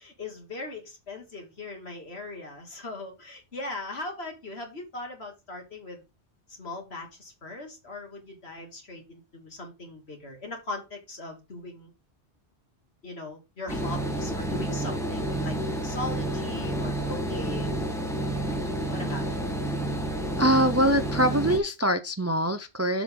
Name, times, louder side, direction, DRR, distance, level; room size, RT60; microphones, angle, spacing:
voice 1, 0.0-6.0 6.5-11.9 13.0-15.6 15.8-17.8 18.9-19.4, left 2 dB, 65° left, 2.5 m, -39 dB
sound 1, 13.7-21.6, right 1 dB, 5° left, 1.2 m, -30 dB
voice 2, 20.4-23.0, equal, 20° right, 0.4 m, -23 dB
7.3 x 6.0 x 3.7 m
omnidirectional pair, 1.1 m